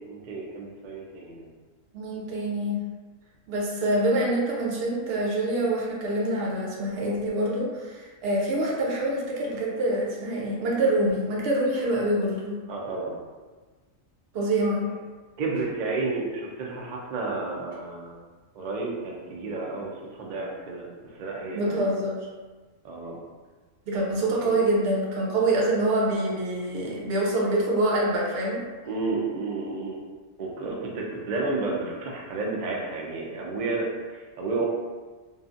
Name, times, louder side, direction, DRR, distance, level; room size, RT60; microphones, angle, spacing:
voice 1, 0.1-1.5 12.7-13.2 15.4-18.1 18.5-20.9 21.1-21.8 22.8-23.2 24.4-24.5 28.8-30.0 30.4-34.6, right 3 dB, 75° right, -2 dB, 0.4 m, -31 dB
voice 2, 1.9-2.8 3.5-12.6 14.3-14.9 21.5-22.3 23.9-28.6, right 1 dB, 55° right, -4 dB, 0.8 m, -25 dB
2.5 x 2.3 x 2.5 m, 1.3 s
omnidirectional pair, 1.4 m